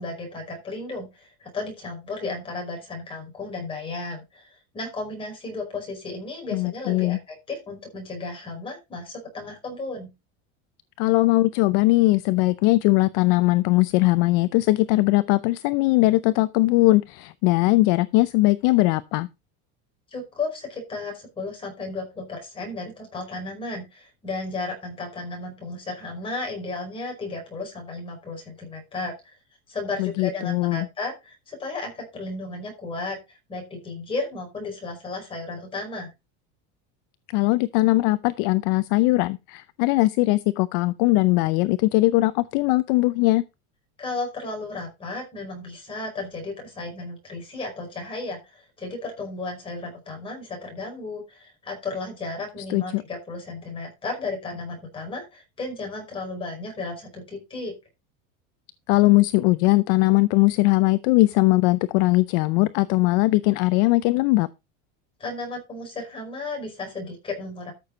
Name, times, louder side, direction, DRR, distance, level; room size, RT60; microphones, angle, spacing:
voice 1, 0.0-10.1 20.1-29.3 29.7-36.1 44.0-57.7 65.2-67.7, left 3 dB, 15° left, 5.1 m, -34 dB
voice 2, 6.5-7.2 11.0-19.3 30.0-30.9 37.3-43.4 52.7-53.0 58.9-64.5, left 20 dB, 50° left, 0.6 m, -20 dB
13.5 x 6.8 x 4.0 m
cardioid pair, 175°, 33 cm